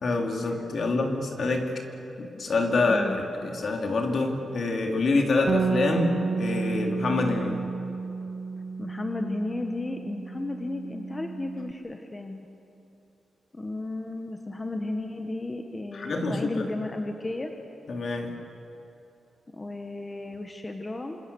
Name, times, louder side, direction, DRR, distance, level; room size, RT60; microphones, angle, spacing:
voice 1, 0.0-1.7 2.2-7.6 15.9-16.7 17.9-18.4, left 3 dB, 50° left, 3 dB, 3.0 m, -26 dB
voice 2, 2.8-3.2 8.8-12.5 13.5-17.5 19.5-21.2, left 2 dB, 20° left, 4 dB, 1.3 m, -33 dB
Bass guitar, 5.5-11.7, right 5 dB, 40° right, 0.8 m, -31 dB
28.0 x 26.5 x 7.0 m, 3.0 s
wide cardioid pair, 175°, 0 cm